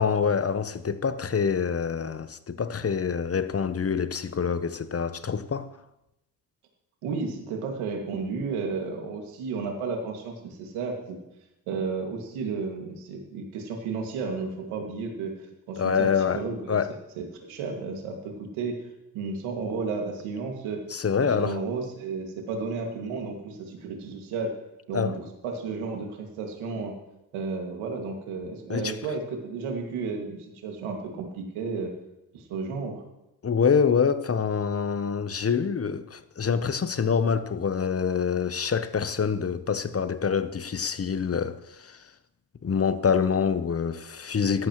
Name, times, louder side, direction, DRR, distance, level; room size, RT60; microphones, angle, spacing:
voice 1, 0.0-5.7 15.8-17.0 20.9-21.6 24.9-25.2 28.7-29.0 33.4-42.1 42.6-44.7, left 6 dB, 30° left, 0.9 m, -26 dB
voice 2, 7.0-11.2 11.7-15.3 15.7-16.1 16.3-16.8 17.2-18.8 19.1-20.8 21.2-24.5 24.9-26.9 27.3-31.9 32.3-33.0, right 4 dB, 80° right, 2.2 m, -32 dB
14.5 x 12.0 x 3.1 m
supercardioid pair, 55°, 48 cm